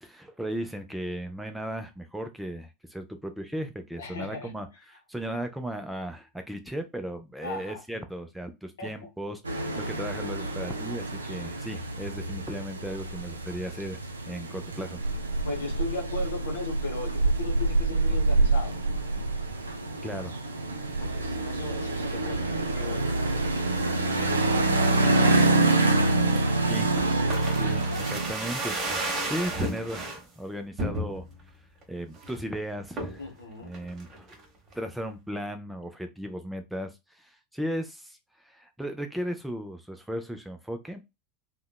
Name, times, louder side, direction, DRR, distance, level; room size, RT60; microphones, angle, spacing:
voice 1, 0.0-14.0 14.3-15.0 20.0-20.4 26.3-27.0 27.5-31.2 31.9-33.2 33.6-34.3 34.7-41.0, right 1 dB, 5° right, 0.4 m, -36 dB
voice 2, 4.0-4.5 7.4-7.8 8.8-9.0 15.4-18.8 21.0-23.1 23.9-25.4 33.2-33.8, left 3 dB, 70° left, 0.8 m, -37 dB
sound 1, 9.4-28.3, right 2 dB, 80° right, 0.4 m, -26 dB
sound 2, 27.0-30.2 30.8-31.4 31.8-31.9 32.2-32.5 33.0-33.3 33.7-34.4 34.7-34.8, right 1 dB, 30° right, 0.8 m, -33 dB
2.7 x 2.1 x 2.2 m
figure-of-eight pair, 80°, 0 cm